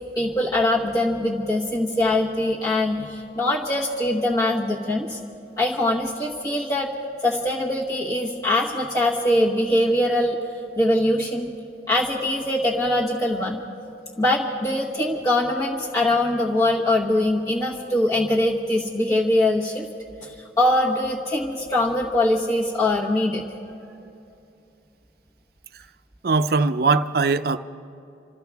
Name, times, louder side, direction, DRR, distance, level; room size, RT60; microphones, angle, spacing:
voice 1, 0.1-5.2 5.6-6.9 7.2-10.4 10.7-11.5 11.9-13.6 14.2-19.8 20.2-23.4, left 1 dB, 20° left, 1.2 m, -22 dB
voice 2, 26.2-27.6, right 4 dB, 60° right, 0.5 m, -20 dB
28.5 x 13.5 x 3.5 m
head